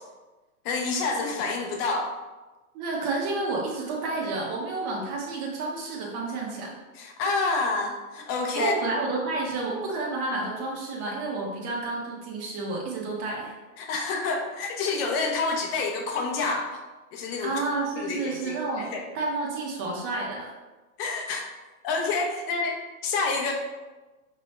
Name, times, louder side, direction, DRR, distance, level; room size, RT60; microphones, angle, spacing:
voice 1, 0.6-2.1 6.9-8.8 13.8-16.8 17.1-17.6 18.0-19.0 21.0-21.5 21.8-23.5, left 3 dB, 40° left, 2 dB, 0.9 m, -28 dB
voice 2, 2.7-6.7 8.5-13.5 17.4-18.9 19.1-20.5, right 3 dB, 35° right, -2 dB, 1.3 m, -30 dB
5.1 x 3.1 x 3.3 m, 1.2 s
hypercardioid pair, 130°, 44 cm